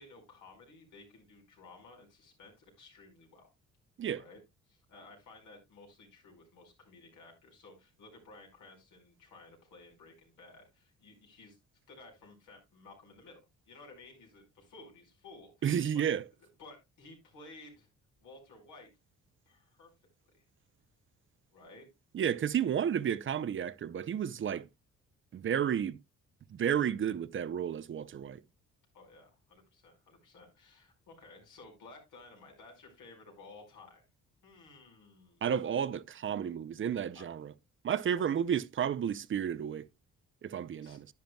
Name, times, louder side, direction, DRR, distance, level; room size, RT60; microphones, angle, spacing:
voice 1, 0.0-3.5 4.1-11.6 11.9-13.4 13.7-15.5 15.9-16.1 16.6-17.9 18.2-18.9 19.4-19.9 20.3-20.4 21.5-21.9 28.9-34.0 34.4-35.5 37.1-37.3 38.1-38.3 40.8-41.0, left 3 dB, 85° left, 5.0 m, -55 dB
voice 2, 15.6-16.2 22.1-24.7 25.3-26.0 26.5-28.4 35.4-37.5 37.8-39.9 40.4-41.1, right 8 dB, 40° right, 0.6 m, -32 dB
10.5 x 10.5 x 2.3 m
cardioid pair, 90°, 30 cm